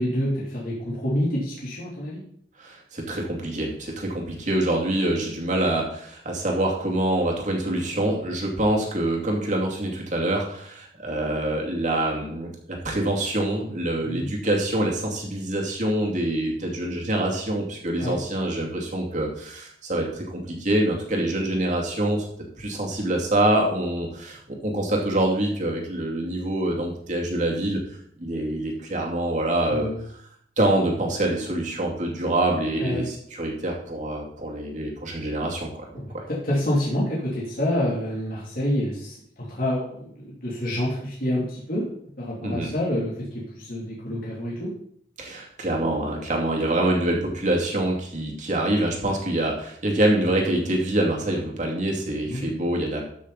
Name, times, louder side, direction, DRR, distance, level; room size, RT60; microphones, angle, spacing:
voice 1, 0.0-2.2 14.0-14.3 18.0-18.1 29.7-30.0 32.8-33.1 35.9-41.9 42.2-44.7 52.3-52.4, left 1 dB, 55° left, -6 dB, 2.9 m, -27 dB
voice 2, 2.6-22.2 22.6-27.8 28.2-29.9 30.6-35.7 36.1-36.2 42.4-42.7 45.2-53.1, right 1 dB, 45° right, 0 dB, 2.5 m, -25 dB
13.5 x 6.4 x 4.1 m, 0.65 s
head